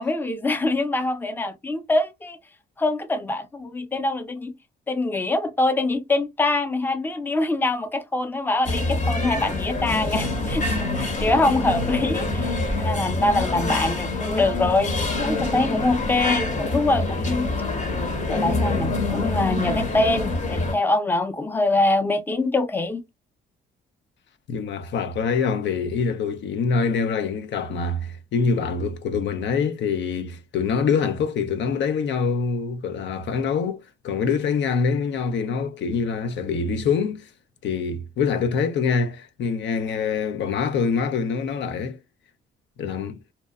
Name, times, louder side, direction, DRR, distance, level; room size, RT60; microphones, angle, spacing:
voice 1, 0.0-2.4 2.8-4.5 4.9-17.5 18.3-23.0, left 2 dB, 10° left, 0.5 m, -24 dB
sound 1, 8.6-20.7, left 2 dB, 40° left, 0.9 m, -26 dB
voice 2, 24.5-37.3 37.6-42.0 42.8-43.2, left 5 dB, 65° left, 0.5 m, -25 dB
2.7 x 2.1 x 2.3 m
cardioid pair, 90°, 20 cm